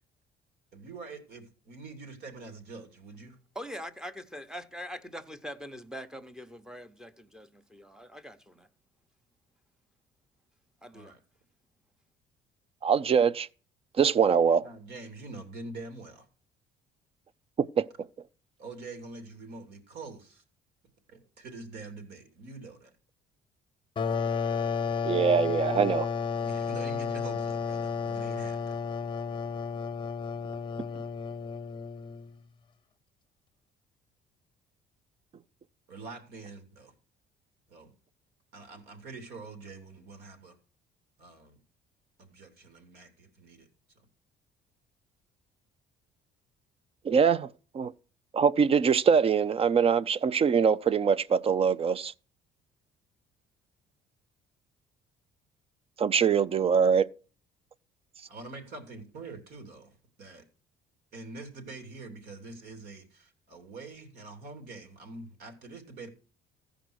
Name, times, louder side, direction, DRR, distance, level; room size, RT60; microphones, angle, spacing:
voice 1, 0.7-3.4 10.9-11.2 14.6-16.3 18.6-20.4 21.1-22.9 26.4-28.8 35.9-36.9 37.7-37.9 38.5-40.6 41.2-41.6 42.2-43.7 43.9-44.1 58.3-60.4 61.1-66.1, right 3 dB, 70° right, 3.0 m, -45 dB
voice 2, 3.5-8.7 10.8-11.1, equal, 5° right, 1.0 m, -43 dB
voice 3, 12.8-13.5 14.0-14.6 17.6-17.9 25.0-26.1 47.0-47.5 47.7-47.9 48.3-52.1 56.0-57.1, right 6 dB, 35° right, 0.5 m, -23 dB
sound 1, 24.0-32.3, left 6 dB, 30° left, 0.8 m, -32 dB
15.0 x 5.2 x 6.3 m
cardioid pair, 110°, 17 cm